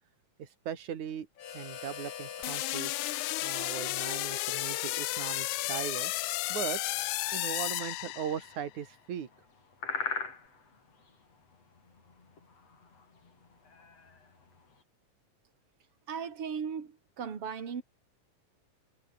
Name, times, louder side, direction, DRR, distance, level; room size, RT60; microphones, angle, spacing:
voice 1, 0.4-1.3 1.5-3.0 3.4-6.1 6.5-6.8 7.3-9.3, right 9 dB, 75° right, 3.8 m, -38 dB
Harmonica, 1.4-7.4, left 8 dB, 75° left, 3.6 m, -45 dB
sound 1, 2.4-8.6, left 18 dB, 90° left, 2.2 m, -33 dB
sound 2, 4.8-14.8, left 4 dB, 55° left, 6.0 m, -45 dB
voice 2, 16.1-17.8, right 7 dB, 50° right, 3.7 m, -37 dB
omnidirectional pair, 3.4 m